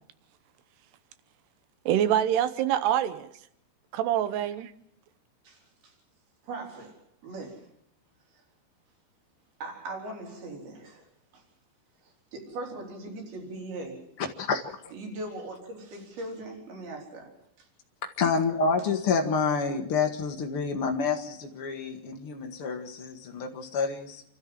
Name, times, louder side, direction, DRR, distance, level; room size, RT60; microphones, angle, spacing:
voice 1, 1.9-3.3 3.9-4.7, right 10 dB, 75° right, 3.0 m, -25 dB
voice 2, 5.5-5.9 6.4-7.7 9.6-11.1 11.3-11.4 12.3-14.1 14.9-17.7, right 2 dB, 60° right, 5.5 m, -40 dB
voice 3, 14.4-14.9 18.2-24.2, left 5 dB, 75° left, 1.2 m, -28 dB
28.0 x 13.0 x 7.6 m
omnidirectional pair, 5.0 m